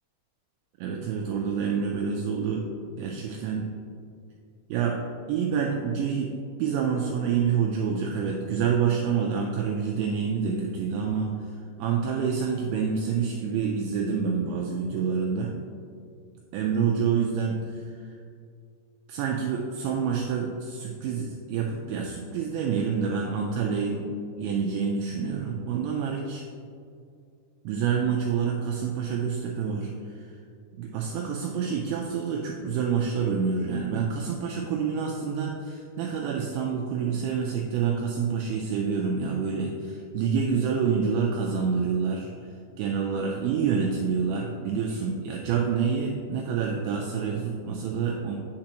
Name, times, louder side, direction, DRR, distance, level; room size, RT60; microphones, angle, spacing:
voice 1, 0.8-2.7 2.9-3.7 4.7-5.0 5.3-6.3 6.6-15.5 16.5-18.1 19.1-24.0 24.4-26.4 27.6-30.3 30.8-42.5 42.8-48.4, right 6 dB, 85° right, 0 dB, 2.6 m, -27 dB
8.7 x 6.7 x 2.9 m, 2.3 s
omnidirectional pair, 5.8 m